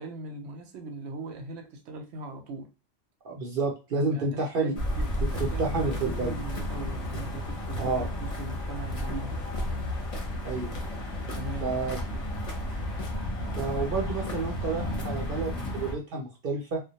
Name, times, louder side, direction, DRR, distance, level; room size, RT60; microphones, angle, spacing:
voice 1, 0.0-2.7 4.0-9.4 11.3-11.8 12.1-12.3, right 2 dB, 90° right, 0.9 m, -40 dB
voice 2, 3.2-4.8 5.4-6.4 7.8-8.1 10.4-10.7 11.6-12.0 13.5-16.8, right 3 dB, 60° right, 0.7 m, -30 dB
sound 1, 4.8-16.0, left 1 dB, 40° left, 0.7 m, -32 dB
2.1 x 2.1 x 2.8 m
omnidirectional pair, 1.1 m